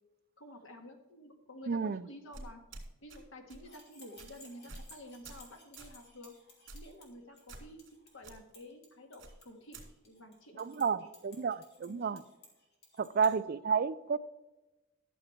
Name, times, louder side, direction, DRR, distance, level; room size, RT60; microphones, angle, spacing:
voice 1, 0.4-2.6 3.0-6.4 6.7-7.8 8.1-11.1 11.8-12.2 13.1-13.2, left 1 dB, 85° left, 4 dB, 1.7 m, -51 dB
voice 2, 1.7-2.0 10.6-12.2 13.0-14.2, right 6 dB, 50° right, 16 dB, 0.4 m, -31 dB
sound 1, 2.3-3.2 3.5-3.7 4.2-4.3 4.7-4.9 5.2-5.5 5.8-6.0 6.7-7.0 7.5-7.9 8.2-8.4 9.2-9.9, right 2 dB, 65° right, 2.5 m, -48 dB
sound 2, 3.5-13.3, left 2 dB, 55° left, 2.7 m, -59 dB
11.5 x 7.2 x 4.4 m, 1.0 s
head